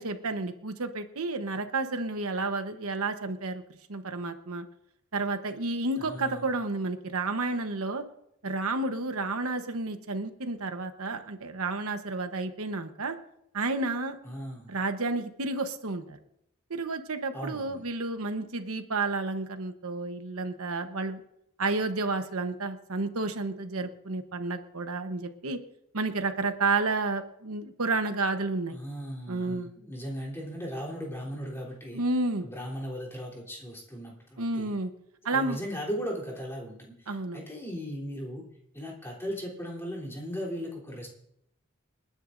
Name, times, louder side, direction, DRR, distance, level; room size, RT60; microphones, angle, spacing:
voice 1, 0.0-3.6 3.9-4.7 5.1-8.0 8.4-13.2 13.5-14.2 14.7-16.2 16.7-21.2 21.6-25.6 25.9-28.8 29.3-29.7 31.9-32.5 34.4-34.9 35.2-35.6 37.1-37.4, right 3 dB, 80° right, 8 dB, 1.0 m, -31 dB
voice 2, 6.0-6.5 14.2-14.7 17.3-17.8 28.7-32.0 32.4-34.7 35.3-38.4 38.7-41.1, equal, 10° left, -3 dB, 3.4 m, -37 dB
28.5 x 10.0 x 2.6 m, 0.76 s
head